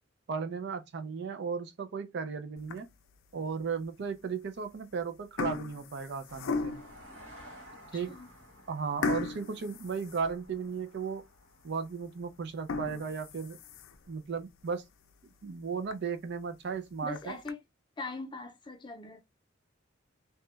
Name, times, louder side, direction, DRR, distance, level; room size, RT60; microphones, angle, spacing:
voice 1, 0.3-2.9 3.3-6.8 7.9-8.2 8.7-11.2 11.6-13.6 14.1-14.8 15.4-17.4, right 5 dB, 60° right, 0.4 m, -35 dB
sound 1, 2.6-3.1 3.7-3.8 4.6-4.9 5.1-7.0 7.6-7.7 8.1-8.2 9.0-10.8 11.2-11.3 11.8-11.9 12.5-14.1 14.6-14.7 15.1-15.2 15.5-15.6 15.9-16.0 16.9-17.5, left 4 dB, 85° left, 0.4 m, -36 dB
sound 2, 6.3-14.2, equal, 75° right, 1.8 m, -55 dB
voice 2, 7.9-8.3 17.0-17.6 18.0-19.2, left 3 dB, 25° left, 0.6 m, -41 dB
3.0 x 2.2 x 3.0 m
head